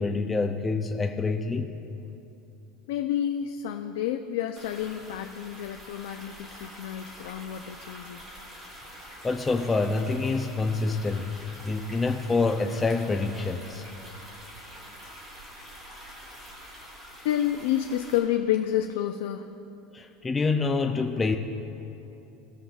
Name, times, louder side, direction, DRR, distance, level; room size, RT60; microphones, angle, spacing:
voice 1, 0.0-1.7 9.2-13.8 19.9-21.4, left 3 dB, 10° left, 4 dB, 0.3 m, -27 dB
voice 2, 2.9-8.2 17.2-19.5, left 11 dB, 85° left, 6 dB, 0.4 m, -29 dB
sound 1, 4.6-18.2, equal, 15° right, 2.1 m, -46 dB
17.5 x 7.2 x 2.3 m, 2.8 s
supercardioid pair, 165°, 0 cm